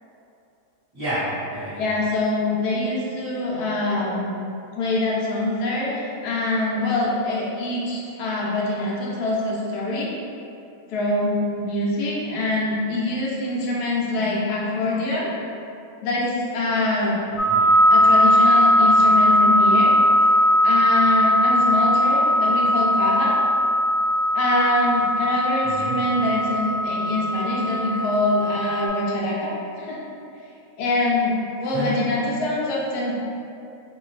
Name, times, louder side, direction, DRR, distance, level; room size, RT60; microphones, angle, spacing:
voice 1, 0.9-1.8 17.3-17.8 25.6-26.1 31.7-32.0, equal, 20° right, -16 dB, 1.0 m, -30 dB
voice 2, 1.8-4.3 4.8-10.1 10.9-15.3 16.0-17.2 17.9-19.9 20.6-23.4 24.3-30.0 30.8-31.3 31.6-33.1, left 2 dB, 85° left, -4 dB, 1.1 m, -24 dB
sound 1, 17.4-28.9, equal, 55° left, 0.7 m, -19 dB
2.7 x 2.6 x 3.1 m, 2.7 s
omnidirectional pair, 1.7 m